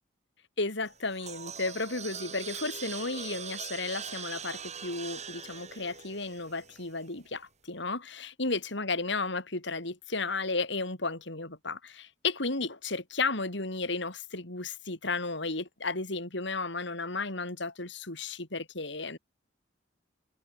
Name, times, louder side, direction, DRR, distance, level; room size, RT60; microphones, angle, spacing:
voice 1, 0.6-19.2, left 3 dB, 65° left, 5.0 m, -33 dB
sound 1, 0.9-7.1, right 7 dB, 40° right, 7.9 m, -42 dB
head